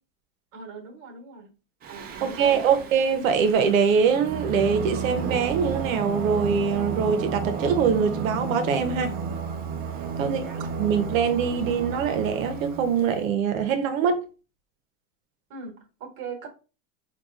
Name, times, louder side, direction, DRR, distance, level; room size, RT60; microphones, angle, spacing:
voice 1, 0.5-1.5 1.9-2.9 10.2-10.6 15.5-16.5, right 4 dB, 45° right, 1.3 m, -40 dB
Singing, 1.8-13.2, right 5 dB, 25° right, 0.4 m, -32 dB
voice 2, 2.2-9.1 10.2-10.4 10.8-14.2, right 6 dB, 75° right, 0.8 m, -23 dB
4.7 x 2.3 x 2.4 m
supercardioid pair, 120°, 40 cm